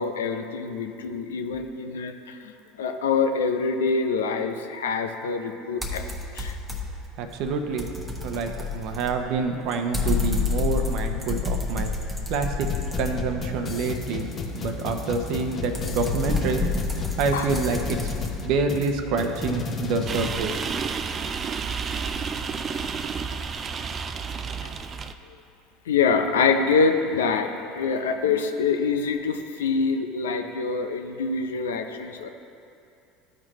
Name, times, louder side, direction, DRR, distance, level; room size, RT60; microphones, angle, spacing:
voice 1, 0.0-2.5 2.8-6.1 6.3-6.6 17.3-17.5 24.6-24.7 25.9-32.3, left 5 dB, 90° left, 6 dB, 0.5 m, -25 dB
sound 1, 5.8-7.1 7.4-13.6 15.1-18.4, left 4 dB, 5° right, 1.1 m, -29 dB
voice 2, 7.2-7.9 8.2-11.9 12.3-12.7 13.0-16.6 17.2-18.1 18.4-20.6, right 4 dB, 65° right, 5 dB, 0.8 m, -27 dB
sound 2, 12.7-20.4, left 4 dB, 35° left, 0.9 m, -33 dB
sound 3, 20.1-25.1, right 5 dB, 35° right, 0.4 m, -31 dB
13.0 x 4.5 x 3.0 m, 2.6 s
hypercardioid pair, 85°, 0 cm